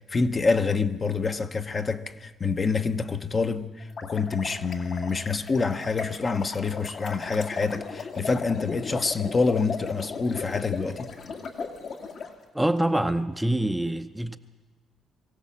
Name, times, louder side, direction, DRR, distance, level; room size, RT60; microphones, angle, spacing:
voice 1, 0.1-11.1, left 4 dB, 35° left, 1.0 m, -27 dB
sound 1, 3.8-12.3, left 5 dB, 60° left, 2.4 m, -37 dB
voice 2, 12.5-14.4, right 1 dB, 5° right, 0.7 m, -25 dB
23.0 x 16.0 x 7.3 m
cardioid pair, 90°, 0 cm